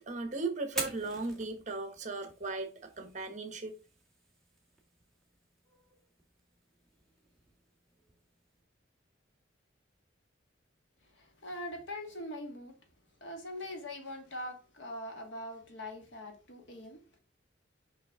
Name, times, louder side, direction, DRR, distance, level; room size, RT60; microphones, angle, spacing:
voice 1, 0.0-3.7, right 3 dB, 35° right, 1.1 m, -37 dB
Fire, 0.6-8.6, right 2 dB, ahead, 1.5 m, -47 dB
voice 2, 11.0-12.8 13.2-17.2, left 1 dB, 70° left, 1.6 m, -42 dB
6.1 x 5.5 x 3.5 m
head